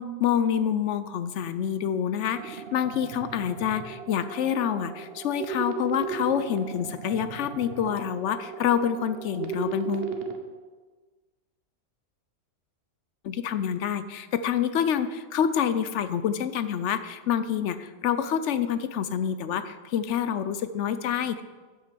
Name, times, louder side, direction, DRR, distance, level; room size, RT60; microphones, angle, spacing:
voice 1, 0.0-10.2 13.2-21.4, left 8 dB, 70° left, 12 dB, 0.9 m, -27 dB
sound 1, 2.4-10.4, right 6 dB, 55° right, 1.1 m, -36 dB
8.5 x 7.4 x 6.9 m, 1.4 s
omnidirectional pair, 1.3 m